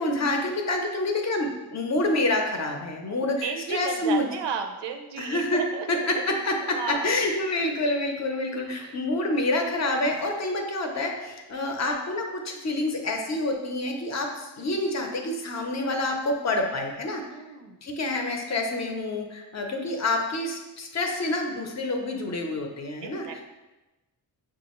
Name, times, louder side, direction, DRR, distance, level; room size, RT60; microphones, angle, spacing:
voice 1, 0.0-4.3 5.2-5.6 5.9-17.4 17.8-23.4, left 2 dB, 40° left, 2 dB, 0.6 m, -27 dB
voice 2, 3.1-5.9 6.1-6.2 6.6-7.1 8.8-9.0 17.3-17.8 19.5-19.7 23.0-23.4, right 6 dB, 90° right, 5 dB, 0.6 m, -34 dB
6.3 x 2.4 x 3.0 m, 1.1 s
wide cardioid pair, 165°, 41 cm